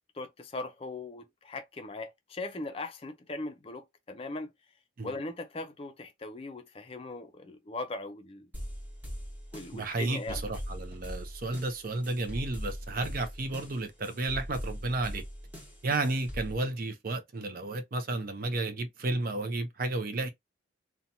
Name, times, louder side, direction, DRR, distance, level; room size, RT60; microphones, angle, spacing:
voice 1, 0.1-4.5 5.0-8.5 9.5-10.4, left 2 dB, 30° left, 0.4 m, -39 dB
sound 1, 8.5-16.5, equal, 10° right, 1.1 m, -41 dB
voice 2, 9.7-15.2 15.8-20.3, right 2 dB, 45° right, 0.5 m, -32 dB
2.8 x 2.2 x 2.6 m
head